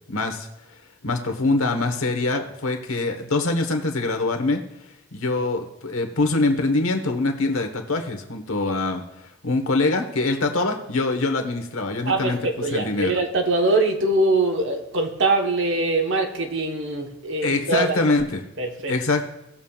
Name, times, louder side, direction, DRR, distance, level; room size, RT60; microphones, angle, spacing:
voice 1, 0.1-0.5 1.0-4.6 5.1-12.4 12.7-13.2 17.4-18.4 18.9-19.2, left 2 dB, 75° left, 5 dB, 1.3 m, -24 dB
voice 2, 12.0-18.0 18.6-18.9, right 2 dB, 55° right, 3 dB, 1.1 m, -23 dB
19.0 x 7.2 x 2.4 m, 0.91 s
head